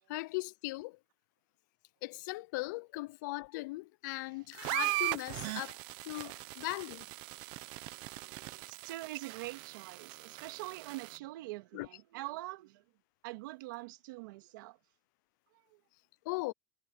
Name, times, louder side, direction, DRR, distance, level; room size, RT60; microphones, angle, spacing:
voice 1, 0.1-1.0 2.0-5.8 6.0-7.1 11.7-11.9 16.3-16.5, left 22 dB, 60° left, 0.5 m, -39 dB
sound 1, 4.5-11.2, right 21 dB, 45° right, 1.0 m, -39 dB
voice 2, 7.6-12.8 13.2-14.8 15.7-15.8, right 19 dB, 70° right, 2.1 m, -45 dB
supercardioid pair, 170°, 11 cm